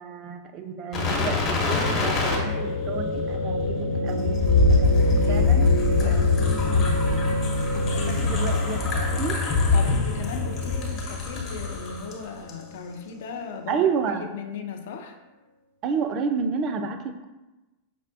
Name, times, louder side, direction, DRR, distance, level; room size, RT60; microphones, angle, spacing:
voice 1, 0.0-4.4 4.8-5.7 6.0-6.2 6.6-7.1 8.1-9.4 13.7-14.2 15.8-17.3, right 5 dB, 35° right, 7 dB, 0.3 m, -30 dB
sound 1, 0.9-12.1 12.5-12.6, left 3 dB, 30° left, 0.8 m, -24 dB
sound 2, 1.6-13.7, left 1 dB, 85° right, 0.5 m, -30 dB
voice 2, 6.0-6.3 6.6-6.8 7.7-8.7 9.7-13.9 14.2-15.2, left 6 dB, 55° left, 4 dB, 0.4 m, -37 dB
5.3 x 2.1 x 2.6 m, 1.1 s
figure-of-eight pair, 90°, 0 cm